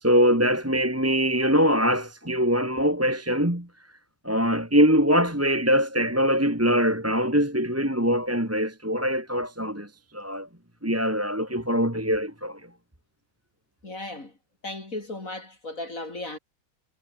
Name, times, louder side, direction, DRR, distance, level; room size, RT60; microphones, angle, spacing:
voice 1, 0.0-3.7 4.2-10.5 10.8-12.6, equal, 5° right, 2.5 m, -23 dB
voice 2, 13.8-14.3 14.6-16.4, left 2 dB, 40° left, 4.4 m, -36 dB
omnidirectional pair, 2.2 m